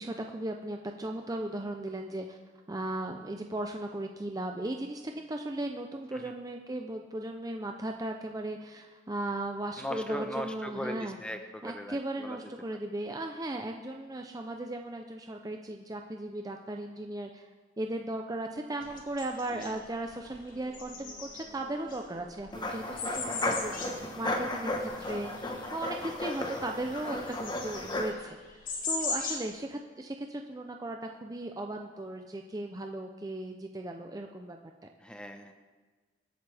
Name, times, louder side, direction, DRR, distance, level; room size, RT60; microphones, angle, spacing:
voice 1, 0.0-2.4 2.7-11.2 11.6-25.4 25.7-28.4 28.6-34.9, right 1 dB, 20° right, 3 dB, 0.5 m, -37 dB
voice 2, 9.8-12.4 19.5-19.8 35.0-35.5, left 1 dB, 5° left, 6 dB, 0.9 m, -38 dB
sound 1, 18.8-29.5, left 4 dB, 50° left, 2.0 m, -40 dB
sound 2, 20.6-25.6, left 1 dB, 55° right, 4.1 m, -56 dB
sound 3, 22.5-28.1, left 2 dB, 25° left, 1.2 m, -34 dB
24.0 x 8.1 x 3.4 m, 1.4 s
head